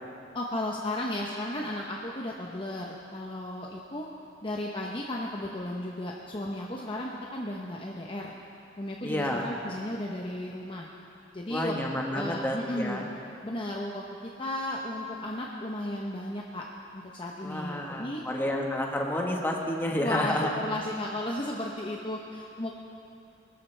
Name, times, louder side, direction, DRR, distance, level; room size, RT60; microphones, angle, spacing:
voice 1, 0.3-4.1 4.4-8.3 8.8-10.9 11.3-11.7 12.1-13.0 13.4-16.6 16.9-18.2 20.0-22.7, left 1 dB, 30° left, -2 dB, 0.9 m, -34 dB
voice 2, 9.0-9.5 11.5-13.0 17.4-20.5, left 1 dB, 10° left, 0 dB, 1.4 m, -30 dB
22.0 x 13.5 x 3.4 m, 2.6 s
head